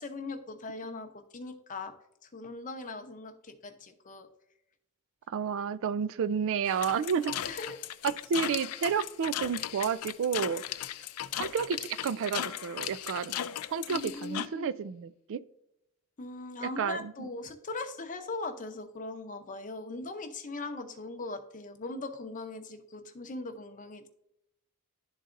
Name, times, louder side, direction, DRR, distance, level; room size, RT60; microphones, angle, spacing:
voice 1, 0.0-1.9 2.2-4.3 7.5-7.8 13.9-14.7 16.2-24.1, left 3 dB, 35° left, 6 dB, 0.7 m, -40 dB
voice 2, 5.3-7.3 8.0-10.6 11.4-13.3 13.7-15.4 16.6-17.3, right 6 dB, 65° right, 16 dB, 0.3 m, -31 dB
sound 1, 6.7-14.5, left 11 dB, 80° left, 0.4 m, -37 dB
11.5 x 4.0 x 2.5 m, 0.82 s
head